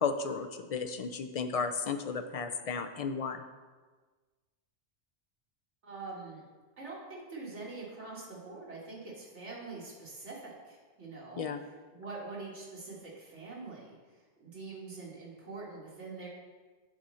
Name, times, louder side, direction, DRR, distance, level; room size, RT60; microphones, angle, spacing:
voice 1, 0.0-3.4 11.4-11.6, left 5 dB, 55° left, 7 dB, 0.4 m, -33 dB
voice 2, 5.8-6.5 6.8-16.3, right 3 dB, 85° right, -4 dB, 2.2 m, -44 dB
8.5 x 4.2 x 6.2 m, 1.4 s
omnidirectional pair, 1.2 m